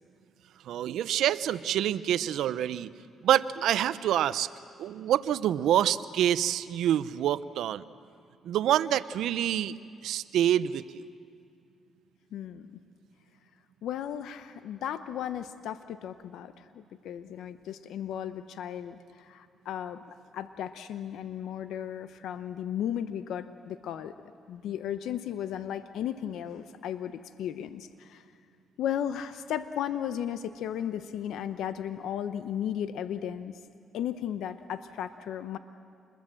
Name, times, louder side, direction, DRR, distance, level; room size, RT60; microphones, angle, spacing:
voice 1, 0.7-2.9 3.2-4.5 4.8-7.8 8.4-9.8 10.0-11.1, right 11 dB, 80° right, 15 dB, 0.7 m, -26 dB
voice 2, 12.3-12.7 13.8-24.1 24.5-28.2 28.8-33.6 33.9-35.6, left 10 dB, 80° left, 11 dB, 0.8 m, -35 dB
27.5 x 21.5 x 7.6 m, 2.3 s
cardioid pair, 90°, 0 cm